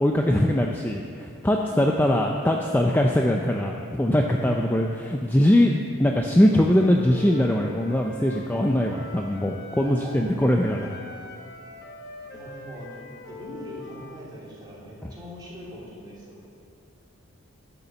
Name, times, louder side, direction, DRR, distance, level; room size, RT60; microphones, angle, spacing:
voice 1, 0.0-11.0 15.0-15.1, left 1 dB, 10° left, 1 dB, 0.4 m, -22 dB
voice 2, 1.7-2.2 9.8-10.5 12.3-12.9 13.3-16.4, equal, 20° right, -6 dB, 2.8 m, -41 dB
Wind instrument woodwind instrument, 6.5-10.1 10.4-14.3, left 2 dB, 45° left, 1.1 m, -42 dB
12.0 x 6.9 x 6.8 m, 2.5 s
head